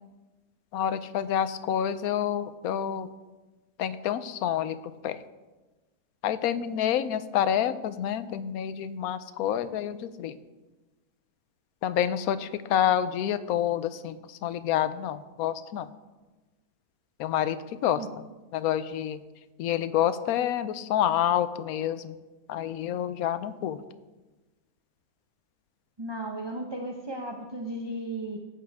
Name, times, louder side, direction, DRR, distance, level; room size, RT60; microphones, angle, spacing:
voice 1, 0.7-3.1 3.8-4.8 5.0-5.2 6.2-10.3 11.8-15.9 17.2-18.0 18.5-19.2 19.6-22.2 22.5-23.8, left 10 dB, 70° left, 13 dB, 1.0 m, -28 dB
voice 2, 26.0-28.4, right 1 dB, 25° right, 2 dB, 0.6 m, -35 dB
14.0 x 8.6 x 3.5 m, 1.2 s
omnidirectional pair, 1.7 m